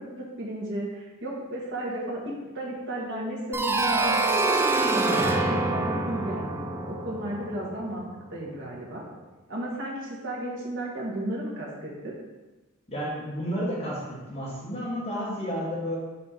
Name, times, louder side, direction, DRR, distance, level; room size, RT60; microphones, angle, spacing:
voice 1, 0.0-8.0 8.3-9.0 9.5-12.1, right 1 dB, 60° right, -4 dB, 1.6 m, -34 dB
sound 1, 3.5-8.2, right 3 dB, 10° right, 0.4 m, -26 dB
voice 2, 12.9-16.0, equal, 30° left, -6 dB, 1.4 m, -31 dB
5.6 x 4.3 x 4.3 m, 1.2 s
head